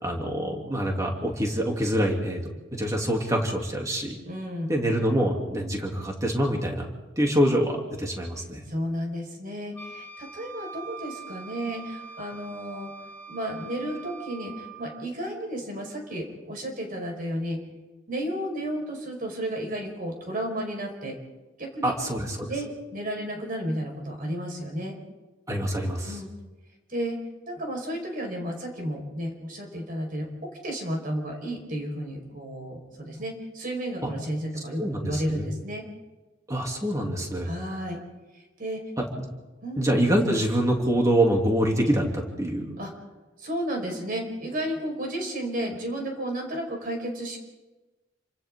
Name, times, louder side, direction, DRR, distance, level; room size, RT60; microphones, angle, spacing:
voice 1, 0.0-4.2 4.7-6.9 7.2-8.6 21.8-22.5 25.5-26.2 34.8-35.5 36.5-37.5 39.0-39.1 39.8-42.8, right 1 dB, 15° right, 0 dB, 3.1 m, -25 dB
voice 2, 4.2-4.7 8.7-12.9 13.3-17.6 18.1-21.2 21.6-22.0 22.5-25.0 26.0-26.3 26.9-27.2 27.5-35.8 37.4-38.0 38.3-38.8 39.6-39.8 42.8-42.9 43.4-47.4, equal, 45° right, 2 dB, 5.2 m, -32 dB
Wind instrument woodwind instrument, 9.7-14.9, right 5 dB, 5° left, 7.6 m, -43 dB
28.5 x 26.0 x 3.9 m, 1.1 s
head